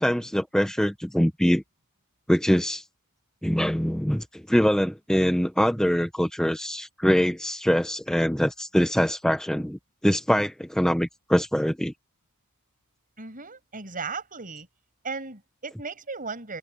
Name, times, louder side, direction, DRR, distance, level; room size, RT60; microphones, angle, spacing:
voice 1, 0.0-1.6 2.3-2.8 3.4-11.9, equal, 5° left, 0.9 m, -23 dB
voice 2, 13.2-14.7 15.0-16.6, right 4 dB, 40° right, 7.3 m, -36 dB
head